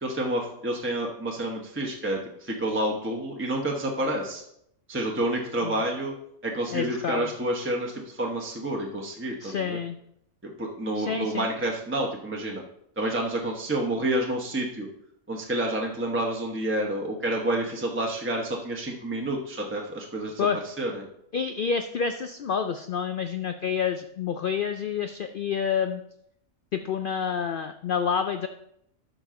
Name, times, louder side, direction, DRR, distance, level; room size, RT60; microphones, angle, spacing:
voice 1, 0.0-4.4 4.9-6.1 6.4-9.8 10.4-12.6 13.0-14.9 15.3-20.5 20.8-21.0, right 1 dB, 10° right, -1 dB, 0.9 m, -29 dB
voice 2, 6.7-7.3 9.4-10.0 11.0-11.5 20.4-20.6 21.3-26.0 26.7-28.5, left 7 dB, 80° left, 8 dB, 0.4 m, -28 dB
12.0 x 5.1 x 3.8 m, 0.74 s
omnidirectional pair, 1.4 m